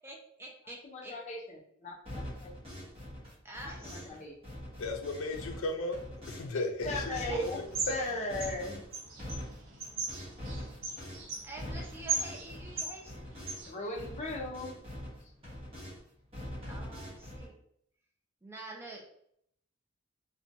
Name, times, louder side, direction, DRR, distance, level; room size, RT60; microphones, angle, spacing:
voice 1, 0.0-1.2 3.4-4.2 7.2-7.5 10.4-10.7 11.4-13.3 16.7-17.6 18.4-19.1, right 2 dB, 10° right, -1 dB, 0.3 m, -47 dB
voice 2, 0.8-2.5 3.6-4.3 6.9-7.6 7.9-8.8 13.7-14.8, left 1 dB, 35° left, -1 dB, 0.6 m, -37 dB
sound 1, 2.1-4.2 4.4-6.5 6.8-13.7 13.9-16.0 16.3-17.5, equal, 30° right, 0.9 m, -43 dB
voice 3, 4.8-6.0 6.3-8.1, left 2 dB, 80° left, 4 dB, 0.4 m, -35 dB
sound 2, 7.4-13.7, right 4 dB, 70° right, 0.5 m, -39 dB
2.6 x 2.2 x 2.6 m, 0.70 s
head